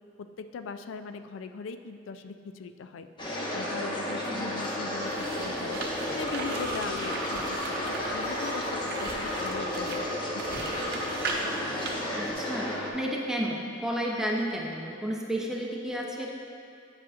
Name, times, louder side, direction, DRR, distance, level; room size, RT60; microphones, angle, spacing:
voice 1, 0.2-10.0 10.4-11.3, left 5 dB, 75° left, 10 dB, 0.3 m, -40 dB
sound 1, 3.2-12.9, left 1 dB, 25° left, 0.8 m, -33 dB
sound 2, 4.5-12.3, right 2 dB, 50° right, 0.7 m, -38 dB
sound 3, 6.2-11.2, left 1 dB, 50° left, 1.3 m, -41 dB
voice 2, 12.2-16.3, equal, 5° right, -2 dB, 0.6 m, -32 dB
8.3 x 7.4 x 2.4 m, 2.4 s
head